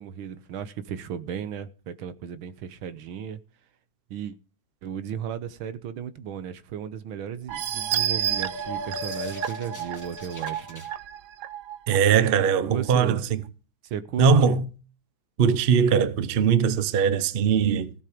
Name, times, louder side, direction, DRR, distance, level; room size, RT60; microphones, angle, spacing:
voice 1, 0.0-3.4 4.1-4.4 4.8-10.9 12.6-13.2 13.8-14.6, right 8 dB, 85° right, 1.8 m, -35 dB
sound 1, 7.5-12.0 12.5-12.6 12.9-13.0, right 10 dB, 65° right, 1.2 m, -31 dB
sound 2, 7.6-10.9, left 2 dB, 10° left, 1.8 m, -39 dB
voice 2, 11.9-13.4 14.2-14.6 15.4-17.9, right 7 dB, 50° right, 0.7 m, -20 dB
16.0 x 7.3 x 5.0 m
omnidirectional pair, 2.2 m